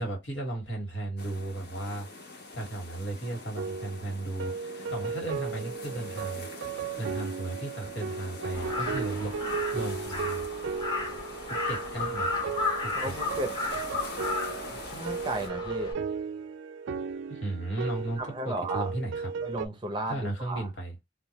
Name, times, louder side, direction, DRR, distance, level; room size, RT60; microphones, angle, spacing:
voice 1, 0.0-10.4 11.5-12.4 12.8-13.1 17.3-19.3 20.1-20.9, right 2 dB, 75° left, 1.2 m, -35 dB
sound 1, 1.2-15.5, left 2 dB, 55° left, 0.8 m, -44 dB
sound 2, 3.6-19.7, right 6 dB, 80° right, 0.3 m, -36 dB
Crow, 8.5-15.9, left 3 dB, 20° left, 0.8 m, -34 dB
voice 2, 12.9-13.5 14.7-15.9 18.2-18.9 19.4-20.7, right 2 dB, 25° right, 0.5 m, -34 dB
2.2 x 2.0 x 2.8 m
head